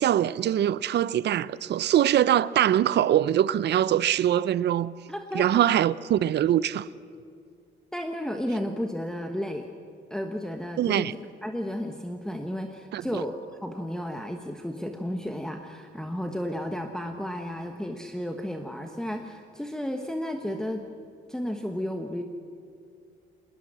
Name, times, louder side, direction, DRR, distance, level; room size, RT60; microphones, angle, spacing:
voice 1, 0.0-4.9 5.3-6.9 10.8-11.1 12.9-13.2, right 11 dB, 60° right, 0.6 m, -23 dB
voice 2, 5.1-5.6 7.9-9.7 10.1-20.8 21.3-22.2, equal, 5° left, 1.2 m, -33 dB
20.5 x 20.0 x 7.6 m
cardioid pair, 90°, 20 cm